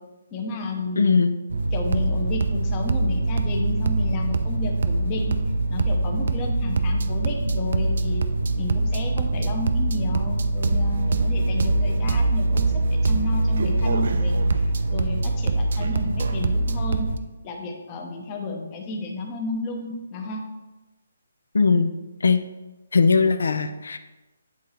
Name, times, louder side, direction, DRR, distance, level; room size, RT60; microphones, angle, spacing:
voice 1, 0.3-1.2 1.7-5.4 5.7-8.2 8.6-17.1 17.4-20.4, left 3 dB, 20° left, 2 dB, 0.8 m, -32 dB
voice 2, 1.0-1.4 21.5-21.9 22.2-22.4 22.9-24.0, left 4 dB, 80° left, 9 dB, 0.5 m, -19 dB
sound 1, 1.5-17.2, right 2 dB, 60° right, 0.4 m, -23 dB
8.4 x 3.8 x 4.3 m, 1.1 s
hypercardioid pair, 170°, 0 cm